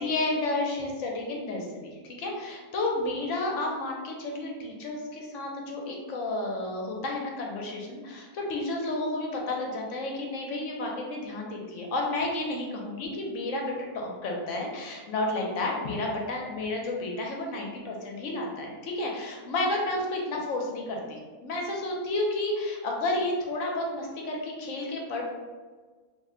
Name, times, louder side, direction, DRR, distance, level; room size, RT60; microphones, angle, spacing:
voice 1, 0.0-25.2, left 2 dB, 65° left, 0 dB, 0.8 m, -31 dB
2.6 x 2.1 x 3.6 m, 1.4 s
omnidirectional pair, 1.6 m